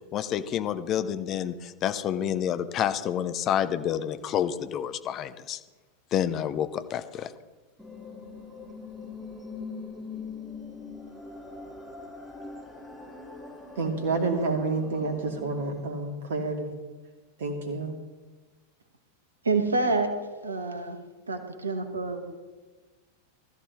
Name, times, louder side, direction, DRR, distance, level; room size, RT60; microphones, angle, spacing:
voice 1, 0.1-5.6 6.1-7.3, left 10 dB, 35° left, 11 dB, 0.8 m, -29 dB
sound 1, 7.8-15.8, left 4 dB, 5° right, 4.9 m, -42 dB
voice 2, 13.8-16.7 17.4-18.0, right 3 dB, 60° right, 4 dB, 2.6 m, -29 dB
voice 3, 19.5-20.1 20.4-21.0 21.3-22.2, right 3 dB, 75° right, 7 dB, 1.6 m, -27 dB
19.0 x 14.0 x 3.3 m, 1.3 s
figure-of-eight pair, 90°, 0 cm